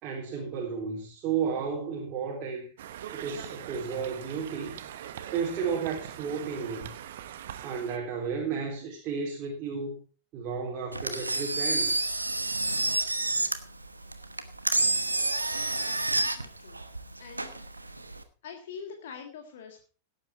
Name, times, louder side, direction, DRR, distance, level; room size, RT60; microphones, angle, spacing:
voice 1, 0.0-2.7 3.1-4.7 5.3-6.9 7.6-10.0 10.3-12.1, right 6 dB, 35° right, 3.4 m, -33 dB
Conversation, 2.8-8.0, right 10 dB, 60° right, 1.0 m, -42 dB
Engine, 10.9-18.2, right 2 dB, 85° right, 1.1 m, -29 dB
voice 2, 15.5-16.8 17.2-17.6 18.4-19.9, left 6 dB, 55° left, 1.8 m, -45 dB
17.0 x 8.7 x 4.3 m
figure-of-eight pair, 90°, 0 cm